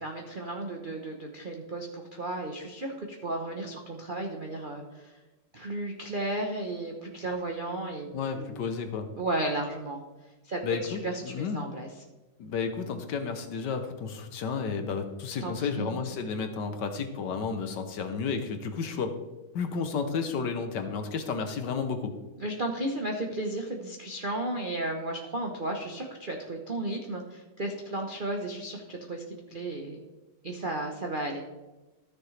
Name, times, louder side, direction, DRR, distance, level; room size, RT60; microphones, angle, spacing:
voice 1, 0.0-5.1 5.5-8.1 8.4-8.6 9.2-10.0 10.4-11.9 15.4-16.0 22.4-29.2 29.5-30.0 30.4-31.4, right 2 dB, 55° right, 1 dB, 0.5 m, -34 dB
voice 2, 8.1-9.1 10.6-11.7 12.4-19.1 19.5-22.1, left 5 dB, 65° left, 7 dB, 1.3 m, -32 dB
14.0 x 6.7 x 3.2 m, 1.1 s
omnidirectional pair, 2.3 m